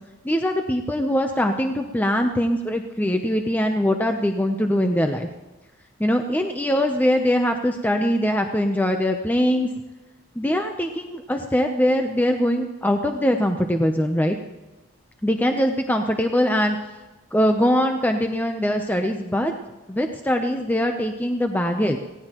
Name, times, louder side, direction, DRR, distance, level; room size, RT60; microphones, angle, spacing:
voice 1, 0.2-5.3 6.0-9.7 10.4-14.4 15.2-16.8 17.3-19.5 19.9-22.0, equal, 10° left, 4 dB, 0.6 m, -22 dB
18.5 x 17.0 x 3.0 m, 1.1 s
head